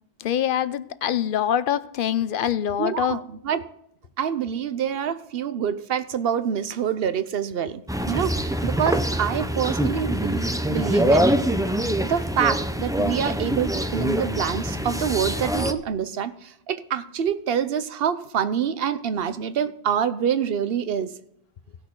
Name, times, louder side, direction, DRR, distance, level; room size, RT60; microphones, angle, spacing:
voice 1, 0.2-3.2, left 10 dB, 60° left, 15 dB, 0.7 m, -24 dB
voice 2, 2.8-3.7 4.2-7.8 8.1-11.3 12.0-21.1, right 8 dB, 65° right, 12 dB, 0.9 m, -26 dB
sound 1, 7.9-15.7, equal, 5° right, 0.4 m, -24 dB
17.5 x 6.3 x 3.8 m, 0.74 s
omnidirectional pair, 1.1 m